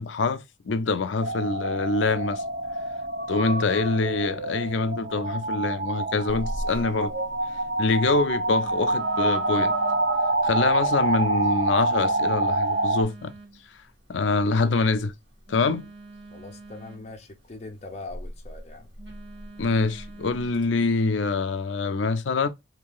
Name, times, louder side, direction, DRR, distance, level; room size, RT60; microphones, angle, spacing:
voice 1, 0.0-2.4 3.3-7.1 7.8-9.7 10.4-13.3 14.1-15.1 15.5-15.9 19.6-22.5, left 3 dB, 85° left, 0.5 m, -25 dB
sound 1, 1.2-13.0, right 2 dB, 55° right, 0.7 m, -26 dB
Telephone, 6.3-20.7, equal, 80° right, 1.6 m, -43 dB
voice 2, 16.3-18.9, left 3 dB, 35° left, 0.6 m, -41 dB
2.8 x 2.6 x 3.8 m
head